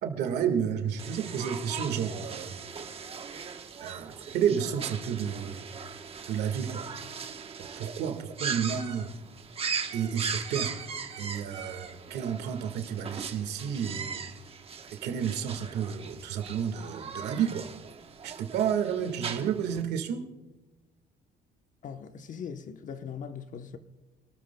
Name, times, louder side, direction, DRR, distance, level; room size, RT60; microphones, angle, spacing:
voice 1, 0.0-2.6 3.8-5.6 6.3-6.9 7.6-9.1 9.9-10.7 11.2-14.2 14.9-17.7 18.2-20.3, right 8 dB, 80° right, 1.7 m, -31 dB
sound 1, 1.0-19.8, right 6 dB, 35° right, 1.1 m, -39 dB
voice 2, 21.8-23.8, left 7 dB, 50° left, 1.0 m, -40 dB
28.0 x 13.0 x 2.3 m
cardioid pair, 110°, 17 cm